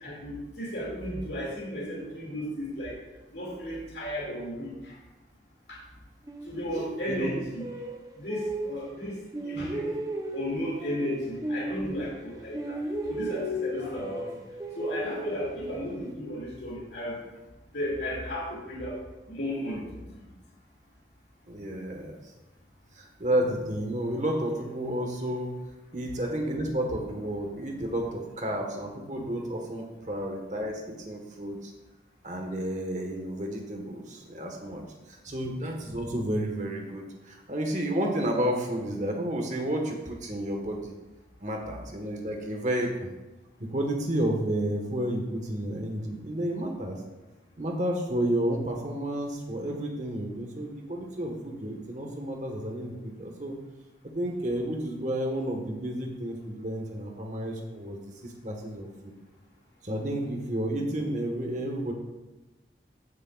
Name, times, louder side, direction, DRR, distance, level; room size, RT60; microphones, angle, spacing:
voice 1, 0.0-2.9 3.3-4.7 6.5-7.6 8.2-9.9 10.3-12.8 13.1-14.2 14.8-17.2 17.7-19.0 19.3-19.9, equal, 70° left, -4 dB, 2.4 m, -34 dB
sound 1, 6.3-9.0 9.3-12.3 12.5-16.1, equal, 20° right, 0.7 m, -35 dB
voice 2, 21.5-22.2 22.9-25.5 25.9-31.7 32.2-40.9 41.4-43.1 43.6-47.0 47.6-53.5 54.1-59.1 59.8-61.9, right 1 dB, 40° right, 2 dB, 1.3 m, -31 dB
14.5 x 6.5 x 2.4 m, 1.1 s
head